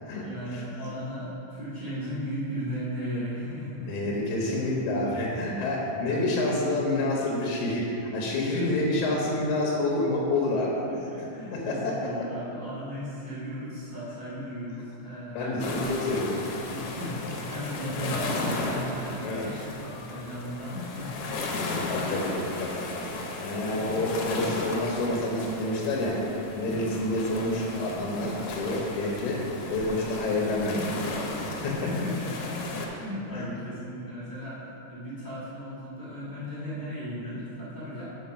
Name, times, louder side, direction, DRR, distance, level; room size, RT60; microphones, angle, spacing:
voice 1, 0.2-3.9 6.0-6.2 8.5-9.3 11.1-15.9 16.4-21.3 23.6-24.4 31.6-38.1, equal, 45° left, -11 dB, 0.5 m, -36 dB
voice 2, 3.9-7.9 8.1-10.7 11.5-12.0 15.3-16.4 19.2-19.5 21.9-26.2 26.5-29.4 29.7-30.8 31.4-31.7 33.3-33.5, left 2 dB, 90° left, -3 dB, 2.7 m, -28 dB
sound 1, 15.6-32.9, left 2 dB, 70° left, 1.9 m, -35 dB
7.2 x 4.6 x 5.6 m, 2.8 s
omnidirectional pair, 3.8 m